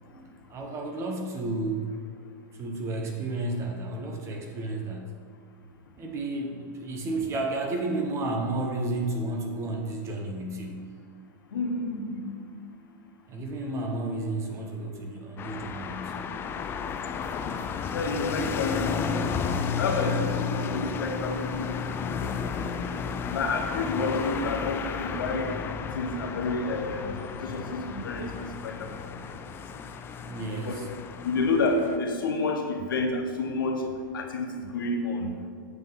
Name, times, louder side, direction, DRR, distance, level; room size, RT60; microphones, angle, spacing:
voice 1, 0.0-1.9 2.5-5.1 6.0-10.9 13.3-16.3 30.2-30.9, right 2 dB, 25° right, 2 dB, 0.9 m, -32 dB
voice 2, 11.5-12.3 17.9-18.9 19.2-21.7 22.2-22.3 23.2-25.5 25.9-29.0 30.6-30.8 31.2-33.8 34.1-35.3, left 3 dB, 85° left, 3 dB, 1.1 m, -29 dB
sound 1, 15.4-32.0, left 6 dB, 20° left, 0.4 m, -33 dB
8.0 x 3.7 x 5.5 m, 2.1 s
hypercardioid pair, 130°, 11 cm